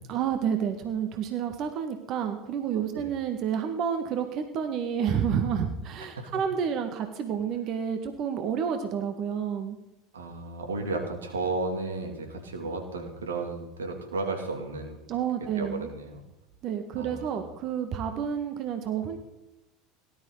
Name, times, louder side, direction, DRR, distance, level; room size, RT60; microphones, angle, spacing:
voice 1, 0.1-9.8 15.1-15.9 16.6-19.2, right 8 dB, 50° right, 7 dB, 1.8 m, -30 dB
voice 2, 10.1-15.0 15.5-16.2 17.0-17.4, right 3 dB, 90° right, 4 dB, 2.6 m, -33 dB
18.5 x 12.5 x 4.0 m, 0.94 s
hypercardioid pair, 80°, 0 cm